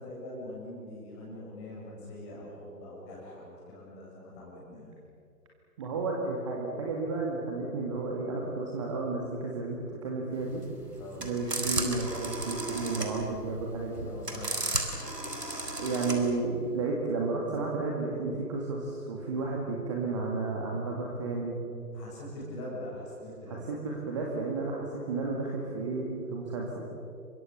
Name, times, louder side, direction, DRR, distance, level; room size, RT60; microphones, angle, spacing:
voice 1, 0.0-4.9 11.0-11.3 14.0-14.6 21.9-23.7, left 1 dB, 15° left, -4 dB, 7.1 m, -43 dB
voice 2, 5.8-10.6 11.2-14.1 15.8-21.6 23.5-26.9, right 3 dB, 20° right, -1 dB, 2.1 m, -32 dB
sound 1, 10.4-16.3, right 2 dB, 75° right, 5.1 m, -34 dB
28.5 x 24.5 x 6.9 m, 2.5 s
figure-of-eight pair, 150°, 48 cm